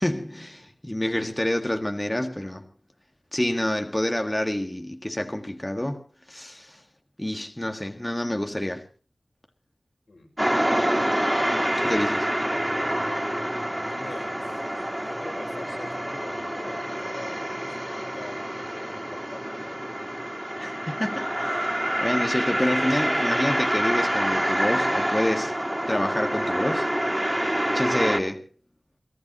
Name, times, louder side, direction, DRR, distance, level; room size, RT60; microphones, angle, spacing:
voice 1, 0.0-2.6 3.3-6.8 7.2-8.8 11.8-12.3 20.6-25.5 25.9-26.9 27.7-28.4, left 1 dB, 20° left, 1.8 m, -28 dB
sound 1, 10.4-28.2, equal, 15° right, 3.6 m, -27 dB
voice 2, 11.4-12.0 13.9-19.9, left 2 dB, 80° left, 6.1 m, -44 dB
28.5 x 15.5 x 3.0 m
wide cardioid pair, 50°, 0 cm